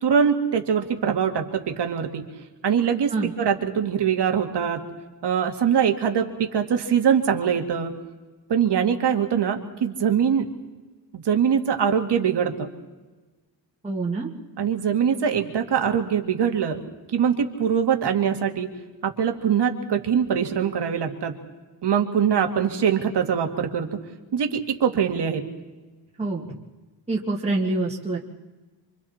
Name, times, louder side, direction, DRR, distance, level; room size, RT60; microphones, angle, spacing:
voice 1, 0.0-2.3 2.6-4.8 5.2-8.0 8.5-10.4 11.1-12.7 14.6-16.8 17.1-18.7 19.0-21.4 21.8-24.0 24.3-25.4, right 7 dB, 65° right, 4 dB, 2.2 m, -23 dB
voice 2, 13.8-14.3 26.2-26.5 27.1-28.2, right 2 dB, 15° right, -4 dB, 2.1 m, -26 dB
28.0 x 25.0 x 4.4 m, 1.2 s
wide cardioid pair, 170°, 44 cm